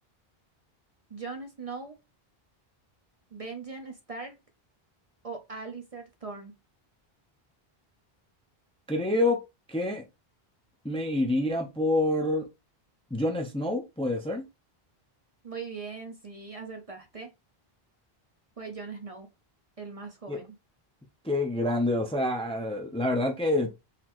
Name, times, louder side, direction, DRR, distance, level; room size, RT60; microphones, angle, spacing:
voice 1, 1.1-2.0 3.3-4.4 5.2-6.6 15.4-17.3 18.6-19.3 19.8-20.6, right 4 dB, 40° right, 0.7 m, -40 dB
voice 2, 8.9-9.4 9.7-10.0 10.8-12.5 13.1-14.4 20.3-20.4 21.2-23.7, left 1 dB, 5° left, 0.6 m, -27 dB
4.1 x 3.0 x 3.0 m
omnidirectional pair, 1.0 m